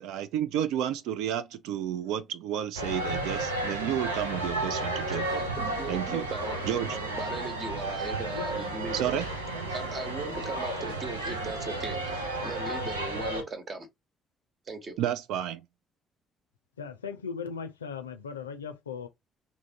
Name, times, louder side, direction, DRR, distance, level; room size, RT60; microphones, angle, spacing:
voice 1, 0.0-5.4 5.9-6.2 6.7-7.0 8.9-9.3 15.0-15.6, right 10 dB, 65° right, 0.3 m, -31 dB
sound 1, 2.7-13.4, right 2 dB, 85° right, 0.7 m, -33 dB
voice 2, 5.1-6.6 6.9-9.3 9.7-13.9 14.7-15.0, right 3 dB, 40° right, 1.1 m, -38 dB
voice 3, 16.8-19.1, left 6 dB, 85° left, 0.5 m, -38 dB
3.6 x 2.6 x 2.7 m
figure-of-eight pair, 45°, 0 cm